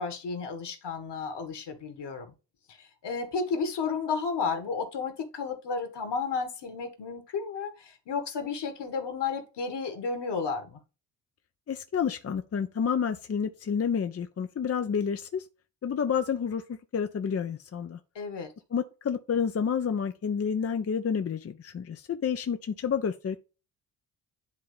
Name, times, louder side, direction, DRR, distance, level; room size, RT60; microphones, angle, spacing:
voice 1, 0.0-2.3 2.7-10.8 18.2-18.5, left 5 dB, 55° left, 2.1 m, -32 dB
voice 2, 11.7-15.5 15.8-16.6 16.9-18.0 18.7-23.4, left 7 dB, 30° left, 0.7 m, -29 dB
10.5 x 3.7 x 3.5 m
hypercardioid pair, 45°, 49 cm